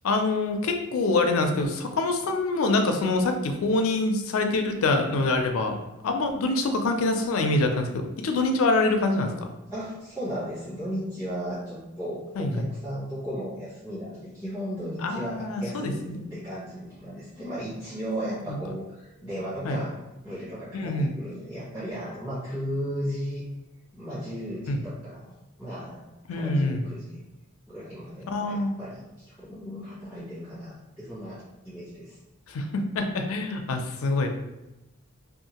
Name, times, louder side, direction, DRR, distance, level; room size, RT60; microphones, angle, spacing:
voice 1, 0.0-5.7 6.0-9.5 12.4-12.7 15.0-16.3 18.5-18.6 19.6-19.8 20.7-21.1 24.7-24.8 26.3-26.9 28.3-28.8 32.5-34.3, left 2 dB, 85° left, 5 dB, 0.4 m, -25 dB
voice 2, 9.7-16.0 16.3-20.0 20.2-23.4 23.9-27.2 27.7-32.2, equal, 10° right, -14 dB, 1.1 m, -35 dB
2.7 x 2.4 x 2.8 m, 0.98 s
head